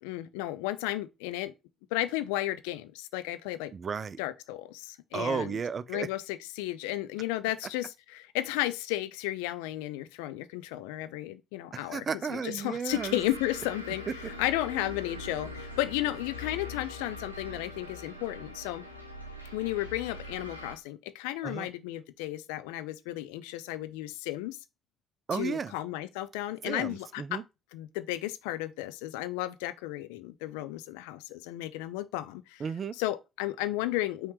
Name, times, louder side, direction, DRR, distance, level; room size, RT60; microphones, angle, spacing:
voice 1, 0.0-1.5 1.9-3.7 4.2-5.5 5.9-12.0 12.3-18.8 19.5-24.6 25.3-27.4 27.7-32.6 33.0-34.3, left 15 dB, 70° left, 0.4 m, -33 dB
voice 2, 3.7-4.2 5.1-6.1 11.9-13.2 21.4-21.7 25.3-25.7 26.6-27.4 32.6-32.9, right 6 dB, 40° right, 0.4 m, -33 dB
sound 1, 12.9-20.7, left 2 dB, 90° right, 0.7 m, -42 dB
5.6 x 3.2 x 3.0 m
figure-of-eight pair, 45°, 0 cm